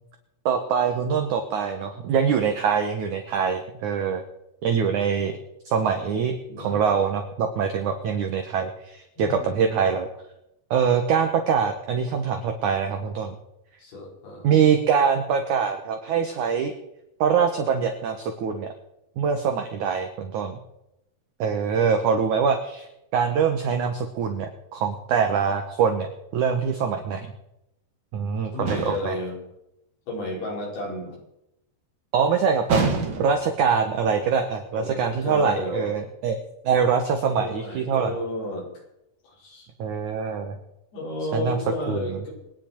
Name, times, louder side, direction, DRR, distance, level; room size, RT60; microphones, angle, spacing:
voice 1, 0.5-4.2 4.6-5.3 5.7-10.1 10.7-13.3 14.4-16.7 17.2-18.7 19.2-20.6 21.4-22.9 23.1-26.1 26.3-27.3 28.1-29.2 32.1-32.8 33.2-36.4 36.6-38.1 39.8-40.6 41.3-42.2, right 6 dB, 65° right, 5 dB, 2.1 m, -24 dB
voice 2, 6.5-6.9 9.2-9.9 13.8-14.5 21.7-21.9 28.5-29.4 30.1-31.2 34.7-35.9 37.3-38.7 39.2-39.7 40.9-42.3, left 1 dB, 75° left, -2 dB, 6.9 m, -33 dB
sound 1, 28.7-29.2 32.7-33.5, right 4 dB, 40° right, 1.9 m, -26 dB
26.0 x 9.9 x 4.6 m, 0.85 s
omnidirectional pair, 4.7 m